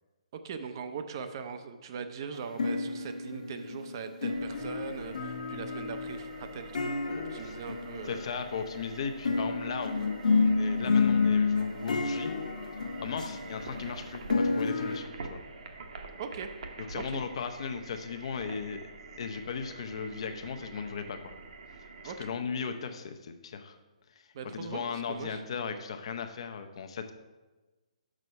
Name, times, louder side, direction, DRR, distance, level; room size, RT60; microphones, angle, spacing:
voice 1, 0.4-8.3 16.2-16.5 16.9-17.2 22.0-22.4 24.3-25.4, right 6 dB, 35° right, 8 dB, 0.6 m, -41 dB
sound 1, 2.4-8.7 9.3-15.0, left 4 dB, 85° left, 1.0 m, -30 dB
sound 2, 4.3-22.3, right 3 dB, 60° right, 1.0 m, -46 dB
voice 2, 8.0-12.3 13.0-15.4 16.8-21.3 22.0-23.8 24.2-24.3 24.5-27.1, left 6 dB, 45° left, 7 dB, 0.7 m, -37 dB
6.3 x 5.6 x 5.3 m, 1.2 s
hypercardioid pair, 170°, 4 cm